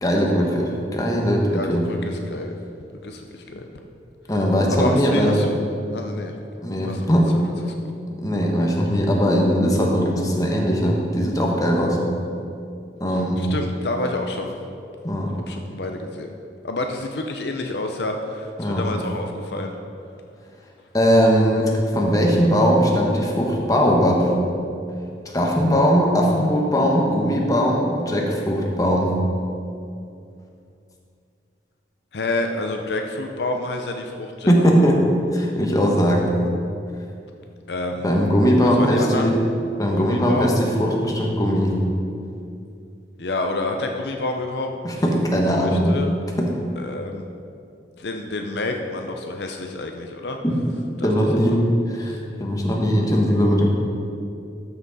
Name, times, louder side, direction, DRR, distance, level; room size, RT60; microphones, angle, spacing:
voice 1, 0.0-1.8 4.3-5.4 6.6-7.3 8.2-12.0 13.0-13.4 15.0-15.3 18.6-18.8 20.9-24.3 25.3-29.1 34.5-35.0 35.3-36.3 38.0-39.4 39.8-41.7 44.8-45.9 46.4-46.5 51.0-51.7 52.0-53.7, equal, 20° left, -1 dB, 1.1 m, -19 dB
voice 2, 1.5-2.5 3.0-3.7 4.7-5.6 5.9-6.4 6.8-7.1 7.6-7.9 13.1-14.5 15.5-16.3 16.6-19.8 32.1-34.5 37.7-38.1 38.6-39.4 39.9-40.6 43.2-44.7 45.6-46.1 46.8-47.3 48.0-50.4 51.0-51.1 51.4-51.6 52.0-52.2, left 2 dB, 65° left, 3 dB, 0.6 m, -29 dB
12.5 x 5.9 x 4.1 m, 2.5 s
head